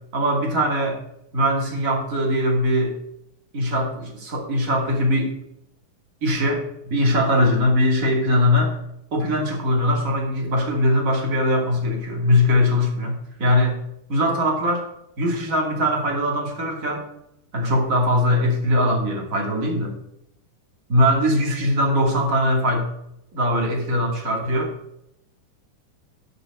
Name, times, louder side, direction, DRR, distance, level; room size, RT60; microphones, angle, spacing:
voice 1, 0.1-1.0 1.3-3.0 3.5-5.3 6.2-8.8 9.1-13.8 14.1-14.8 15.2-17.0 17.5-19.9 20.9-22.9 23.3-24.7, left 1 dB, 25° right, 1 dB, 2.5 m, -21 dB
9.8 x 7.6 x 5.4 m, 0.78 s
omnidirectional pair, 3.7 m